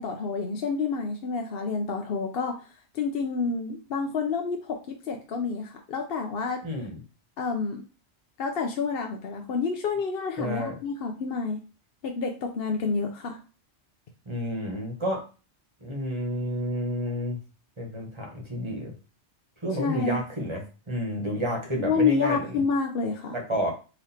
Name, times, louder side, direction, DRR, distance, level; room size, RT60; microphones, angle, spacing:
voice 1, 0.0-2.6 2.9-6.6 7.4-7.8 8.4-11.6 12.0-13.4 19.8-20.2 21.8-23.4, left 5 dB, 60° left, 3 dB, 0.8 m, -28 dB
voice 2, 6.6-7.0 10.4-10.7 14.3-15.2 15.8-17.4 17.8-18.9 19.6-22.6 23.3-23.7, equal, 25° right, 0 dB, 1.3 m, -30 dB
4.1 x 3.0 x 4.3 m, 0.33 s
omnidirectional pair, 1.2 m